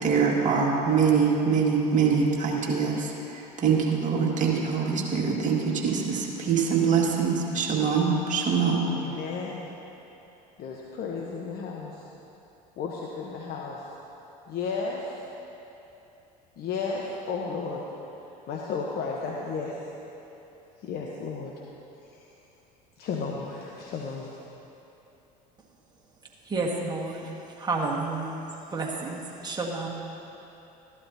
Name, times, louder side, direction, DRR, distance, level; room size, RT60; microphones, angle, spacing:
voice 1, 0.0-8.9, right 5 dB, 35° right, -2 dB, 2.1 m, -24 dB
voice 2, 8.9-9.7 10.6-12.0 12.8-13.8 14.5-15.1 16.6-17.8 18.5-19.8 20.8-21.5 23.0-24.4, left 5 dB, 50° left, -2 dB, 1.1 m, -33 dB
voice 3, 26.5-27.3 27.6-28.4 28.7-29.9, right 3 dB, 20° right, -2 dB, 1.9 m, -30 dB
14.5 x 11.5 x 2.8 m, 3.0 s
hypercardioid pair, 75°, 21 cm